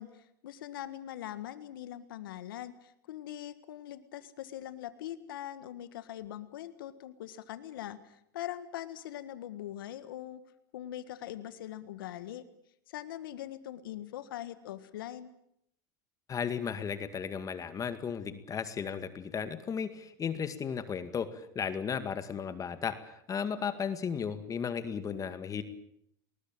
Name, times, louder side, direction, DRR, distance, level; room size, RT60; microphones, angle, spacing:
voice 1, 0.0-10.4 10.7-12.4 12.9-15.3, left 12 dB, 85° left, 14 dB, 1.6 m, -42 dB
voice 2, 16.3-25.6, left 7 dB, 30° left, 11 dB, 2.1 m, -35 dB
20.0 x 20.0 x 8.9 m, 0.74 s
hypercardioid pair, 100°, 11 cm